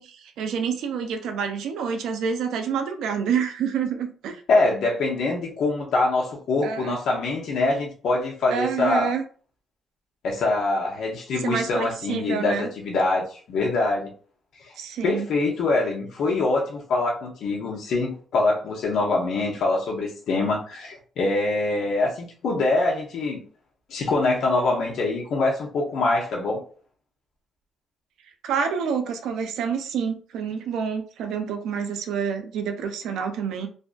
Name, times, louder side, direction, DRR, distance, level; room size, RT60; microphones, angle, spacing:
voice 1, 0.0-4.4 6.6-7.0 8.5-9.2 11.4-12.7 14.8-15.3 28.4-33.7, right 6 dB, 85° right, 0.4 m, -28 dB
voice 2, 4.5-9.1 10.2-14.1 15.0-23.4 23.9-26.6, left 2 dB, 75° left, 0.7 m, -24 dB
2.5 x 2.4 x 2.2 m
cardioid pair, 90°, 0 cm